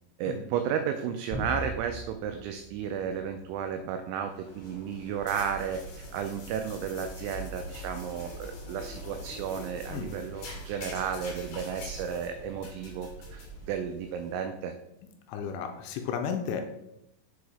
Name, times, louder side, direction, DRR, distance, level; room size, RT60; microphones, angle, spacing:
voice 1, 0.2-14.7, right 8 dB, 90° right, 6 dB, 2.6 m, -33 dB
sound 1, 1.3-3.9, equal, 20° right, 0.6 m, -40 dB
sound 2, 4.3-14.3, equal, 60° left, 2.6 m, -43 dB
voice 2, 15.3-16.6, left 7 dB, 85° left, 5 dB, 2.9 m, -33 dB
7.2 x 4.8 x 4.1 m, 0.87 s
omnidirectional pair, 5.9 m